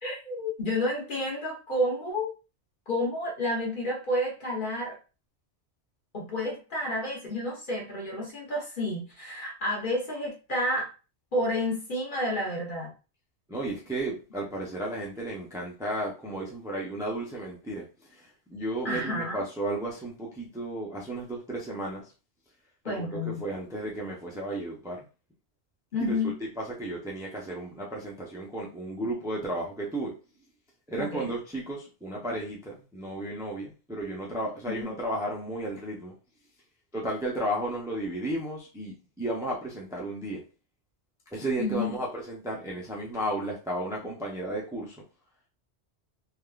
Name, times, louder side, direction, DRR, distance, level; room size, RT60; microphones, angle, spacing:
voice 1, 0.0-2.3 2.9-5.0 6.1-10.9 11.3-12.9 18.8-19.4 22.8-23.4 25.9-26.4 31.0-31.3 34.7-35.0 41.6-42.0, left 1 dB, 50° left, -2 dB, 1.2 m, -30 dB
voice 2, 13.5-22.0 22.8-25.0 26.0-26.2 26.6-30.1 30.9-36.1 36.9-40.4 41.3-45.0, right 1 dB, 5° right, -3 dB, 0.5 m, -33 dB
3.5 x 2.4 x 2.3 m, 0.33 s
omnidirectional pair, 1.1 m